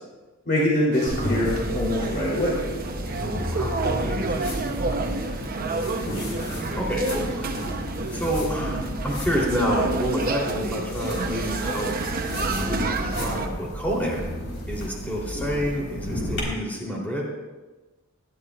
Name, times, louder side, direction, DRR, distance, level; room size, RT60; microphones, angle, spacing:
voice 1, 0.4-2.6, left 1 dB, 50° left, -6 dB, 3.2 m, -24 dB
sound 1, 0.9-13.5, right 3 dB, 45° right, 0.8 m, -30 dB
sound 2, 1.1-16.4, equal, 75° left, 4.3 m, -32 dB
voice 2, 3.2-5.1 5.5-5.9 6.3-7.7 8.1-11.9 12.4-14.2 14.7-17.3, equal, 10° left, -4 dB, 3.4 m, -29 dB
19.5 x 12.5 x 2.5 m, 1.2 s
head